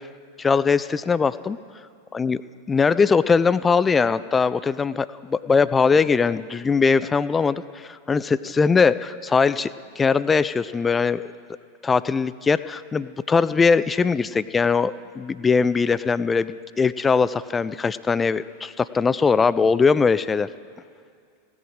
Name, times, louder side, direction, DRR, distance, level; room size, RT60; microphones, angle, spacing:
voice 1, 0.4-1.6 2.1-2.4 2.7-9.7 10.0-11.2 11.8-20.5, left 5 dB, 15° left, 15 dB, 0.3 m, -21 dB
16.0 x 10.5 x 5.0 m, 2.3 s
figure-of-eight pair, 90°, 0 cm